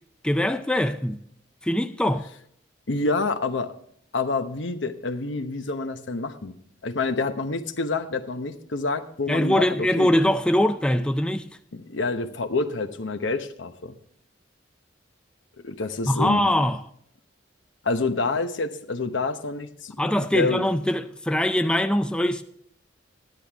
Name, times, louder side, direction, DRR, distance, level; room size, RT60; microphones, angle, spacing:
voice 1, 0.2-1.2 1.6-2.3 9.3-11.5 16.1-16.8 20.0-22.4, left 1 dB, 5° left, 0.4 m, -22 dB
voice 2, 2.9-3.7 4.1-6.5 6.8-10.1 11.7-13.9 15.6-16.4 17.8-20.1 20.3-20.6, left 3 dB, 80° left, 0.9 m, -27 dB
14.0 x 10.5 x 3.5 m
head